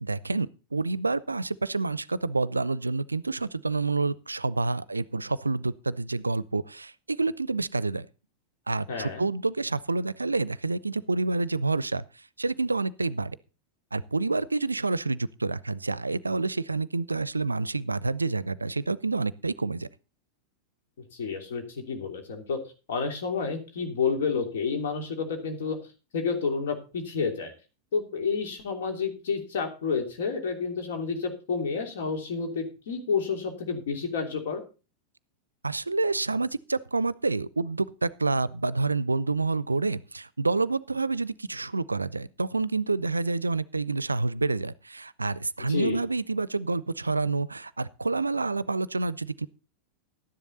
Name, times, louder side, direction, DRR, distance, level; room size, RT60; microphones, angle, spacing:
voice 1, 0.0-8.1 8.7-13.4 13.9-19.9 35.6-49.5, right 3 dB, 80° right, 21 dB, 0.5 m, -28 dB
voice 2, 8.9-9.3 21.1-22.6 22.9-25.8 26.1-27.5 27.9-34.6 45.7-46.0, left 5 dB, 60° left, 5 dB, 3.1 m, -30 dB
12.5 x 10.5 x 4.1 m, 0.32 s
figure-of-eight pair, 90°, 0 cm